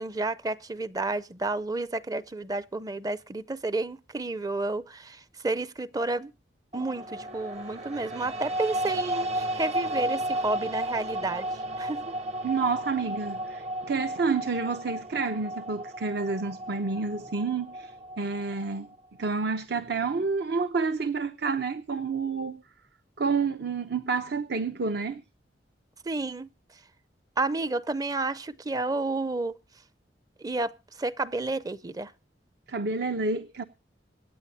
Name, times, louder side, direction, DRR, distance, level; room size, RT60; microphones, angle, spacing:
voice 1, 0.0-6.3 6.7-11.5 11.8-12.2 26.0-26.5 27.4-29.6 30.4-32.1, right 2 dB, 20° right, 0.5 m, -31 dB
sound 1, 6.7-18.9, right 1 dB, 40° right, 0.9 m, -33 dB
voice 2, 12.4-18.9 19.2-22.6 23.2-25.2 32.7-33.6, right 4 dB, 65° right, 0.8 m, -29 dB
25.5 x 8.8 x 2.8 m
head